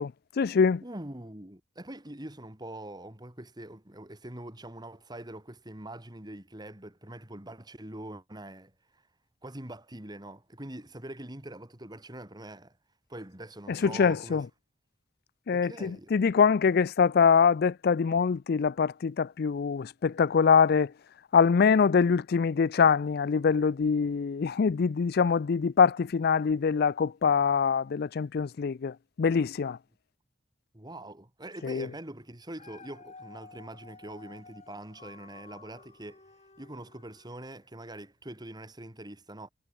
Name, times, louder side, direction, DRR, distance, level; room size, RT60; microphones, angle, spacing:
voice 1, 0.0-0.8 13.7-14.5 15.5-20.9 21.3-29.8 31.6-31.9, left 6 dB, 55° left, 0.4 m, -24 dB
voice 2, 0.8-9.0 9.4-12.8 13.1-14.4 15.5-16.1 30.7-36.2 36.6-39.5, right 1 dB, 25° right, 3.1 m, -44 dB
Dog, 32.3-37.7 38.2-38.3, left 4 dB, 40° left, 4.4 m, -52 dB
head